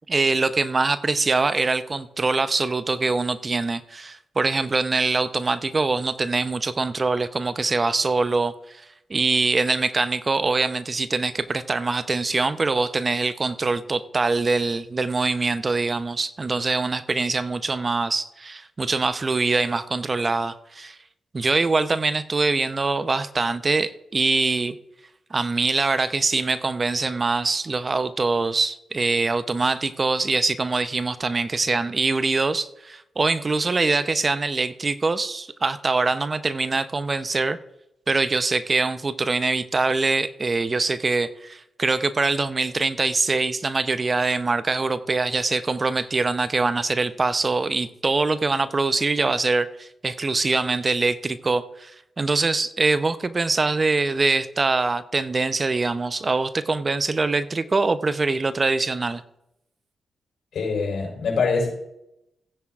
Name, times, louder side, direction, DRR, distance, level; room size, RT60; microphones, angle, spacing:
voice 1, 0.1-8.8 9.1-21.0 21.3-24.7 25.3-37.6 38.1-51.9 52.2-59.2, right 3 dB, 40° right, 12 dB, 0.7 m, -23 dB
voice 2, 60.5-61.7, left 4 dB, 70° left, -1 dB, 4.7 m, -24 dB
16.5 x 9.6 x 2.5 m, 0.83 s
supercardioid pair, 45°, 0 cm